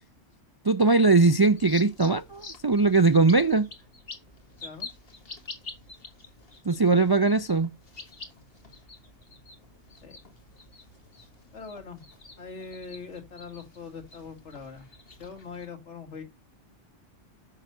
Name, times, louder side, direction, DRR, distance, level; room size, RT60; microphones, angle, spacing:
voice 1, 0.6-3.7 6.7-7.7, right 3 dB, 40° right, 0.3 m, -20 dB
sound 1, 1.4-15.7, left 3 dB, 55° left, 1.9 m, -47 dB
voice 2, 11.5-12.0 12.4-14.9 15.2-16.2, left 5 dB, 70° left, 2.1 m, -42 dB
6.8 x 6.6 x 7.7 m
omnidirectional pair, 1.2 m